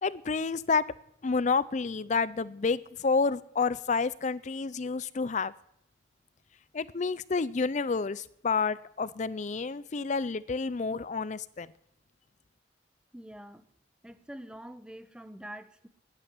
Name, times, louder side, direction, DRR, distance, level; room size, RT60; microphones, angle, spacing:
voice 1, 0.0-0.8 1.2-5.5 6.7-11.7, left 4 dB, 40° left, 17 dB, 0.5 m, -29 dB
voice 2, 13.1-13.7 14.0-15.9, equal, 5° right, 10 dB, 0.8 m, -45 dB
12.0 x 9.9 x 10.0 m, 0.73 s
head